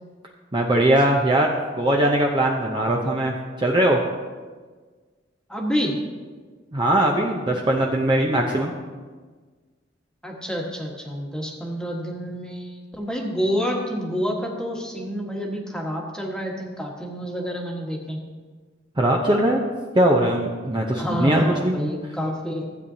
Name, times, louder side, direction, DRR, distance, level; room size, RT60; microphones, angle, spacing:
voice 1, 0.5-4.0 6.7-8.7 19.0-19.6 19.9-21.8, right 1 dB, 25° right, 0 dB, 0.7 m, -20 dB
voice 2, 5.5-6.0 10.2-18.2 21.0-22.7, equal, 5° left, -1 dB, 1.4 m, -28 dB
15.5 x 8.9 x 2.8 m, 1.4 s
head